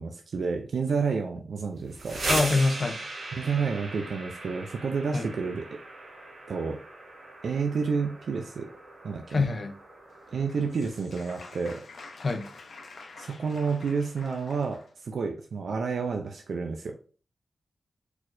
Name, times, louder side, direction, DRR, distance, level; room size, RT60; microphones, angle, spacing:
voice 1, 0.0-2.2 3.3-5.6 6.5-6.8 7.4-8.7 9.0-9.4 10.3-11.8 13.2-16.9, right 5 dB, 85° right, 0.5 m, -30 dB
sound 1, 1.8-11.5, right 2 dB, 70° right, 1.6 m, -38 dB
voice 2, 2.3-3.0 5.1-5.3 9.3-9.7 12.2-12.5, left 3 dB, 40° left, 0.6 m, -25 dB
Applause, 10.1-14.9, left 3 dB, 70° left, 0.9 m, -48 dB
4.5 x 4.2 x 2.6 m
wide cardioid pair, 160°, 0 cm